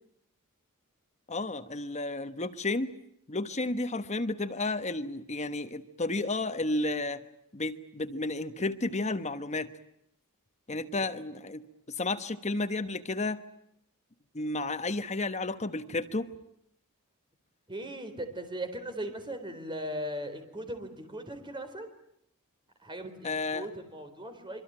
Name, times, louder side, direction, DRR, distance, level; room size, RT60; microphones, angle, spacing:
voice 1, 1.3-2.9 3.3-7.2 7.5-9.7 10.7-13.4 14.3-16.3 23.2-23.7, left 2 dB, 30° left, 10 dB, 1.2 m, -32 dB
voice 2, 17.7-21.9 22.8-24.6, right 1 dB, 20° right, 7 dB, 4.1 m, -38 dB
26.0 x 24.5 x 8.9 m, 0.76 s
head